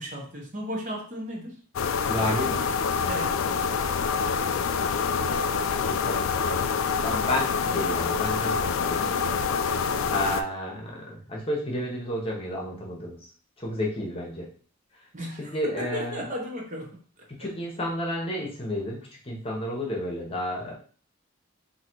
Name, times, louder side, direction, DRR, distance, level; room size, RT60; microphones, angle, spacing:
voice 1, 0.0-1.6 3.0-3.4 10.0-10.2 15.1-17.2, equal, 35° right, 0 dB, 1.0 m, -35 dB
sound 1, 1.8-10.4, left 6 dB, 70° left, 0.3 m, -26 dB
voice 2, 2.1-2.7 5.8-6.7 7.0-9.1 10.1-13.3 13.6-14.5 15.4-16.2 17.4-20.7, left 1 dB, 25° left, -1 dB, 1.0 m, -31 dB
3.9 x 2.8 x 4.5 m, 0.43 s
head